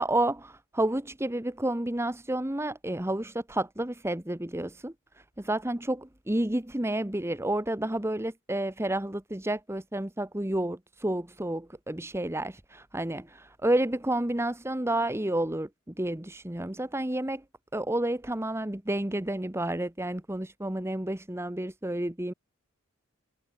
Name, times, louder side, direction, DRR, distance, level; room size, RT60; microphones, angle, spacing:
voice 1, 0.0-4.9 5.4-17.4 17.7-22.3, right 1 dB, 10° right, 1.1 m, -30 dB
head